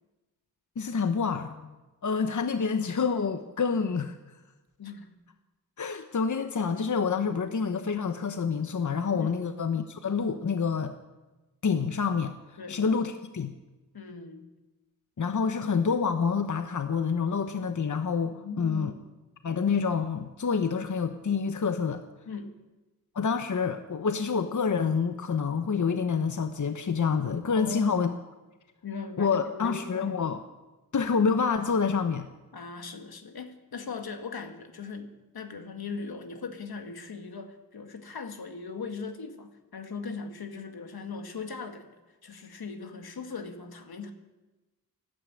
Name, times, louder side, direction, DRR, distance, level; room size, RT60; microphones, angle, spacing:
voice 1, 0.8-1.7 2.0-4.2 5.8-10.9 11.6-12.3 12.7-13.5 15.2-18.9 19.4-22.0 23.1-28.1 29.2-30.4 30.9-32.3, left 5 dB, 55° left, 8 dB, 1.0 m, -27 dB
voice 2, 4.8-5.1 9.1-9.4 12.6-12.8 13.9-14.5 18.3-19.0 22.3-22.6 27.6-28.0 28.8-30.1 32.5-41.9 42.2-44.1, left 4 dB, 85° left, 6 dB, 1.8 m, -39 dB
13.0 x 12.0 x 8.4 m, 1.1 s
cardioid pair, 55°, 36 cm